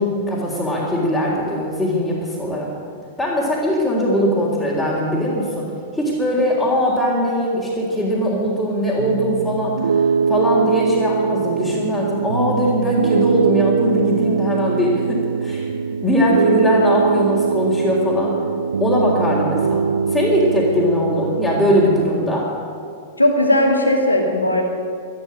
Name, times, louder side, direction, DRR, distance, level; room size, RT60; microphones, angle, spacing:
voice 1, 0.0-2.7 3.2-5.7 5.9-18.3 18.8-22.5, equal, 5° left, -7 dB, 3.7 m, -20 dB
Piano, 9.0-22.1, right 5 dB, 75° right, 0.3 m, -22 dB
voice 2, 23.2-24.6, left 1 dB, 90° left, 1 dB, 2.4 m, -17 dB
12.5 x 12.5 x 8.8 m, 2.3 s
figure-of-eight pair, 95°, 0 cm